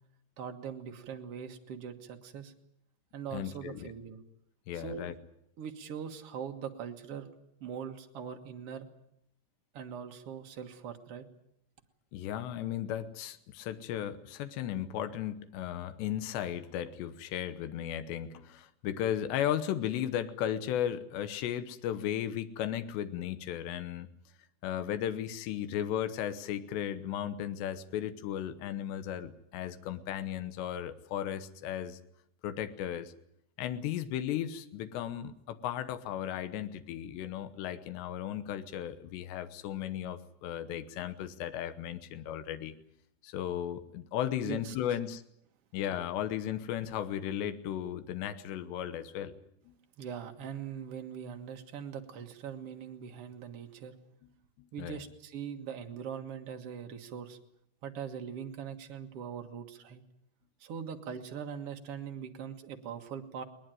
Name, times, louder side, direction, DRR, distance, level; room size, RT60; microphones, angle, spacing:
voice 1, 0.4-2.5 3.1-4.2 4.7-5.1 5.6-7.3 7.6-8.9 9.7-11.2 44.4-44.7 50.0-53.9 54.7-57.4 57.8-60.0 60.6-63.4, right 7 dB, 55° right, 4 dB, 1.7 m, -41 dB
voice 2, 3.3-3.9 4.7-5.1 12.1-24.1 24.6-32.0 32.4-33.1 33.6-42.7 43.2-45.2 45.7-49.3 49.7-49.8 54.6-55.0, left 10 dB, 85° left, 12 dB, 3.2 m, -35 dB
21.5 x 20.0 x 9.1 m, 0.74 s
omnidirectional pair, 4.9 m